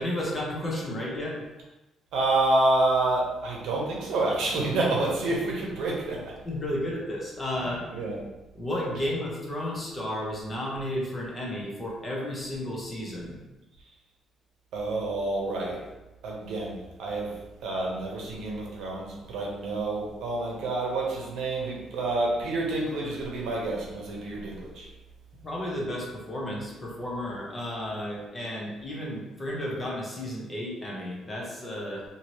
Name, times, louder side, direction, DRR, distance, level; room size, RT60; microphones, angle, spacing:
voice 1, 0.0-1.4 6.1-7.8 8.5-13.4 25.4-32.0, left 1 dB, 20° left, -3 dB, 0.6 m, -33 dB
voice 2, 2.1-6.3 7.9-8.2 14.7-15.8 16.2-17.4 17.6-24.9, right 2 dB, 75° right, -2 dB, 0.7 m, -28 dB
2.8 x 2.6 x 3.0 m, 1.0 s
cardioid pair, 175°, 0 cm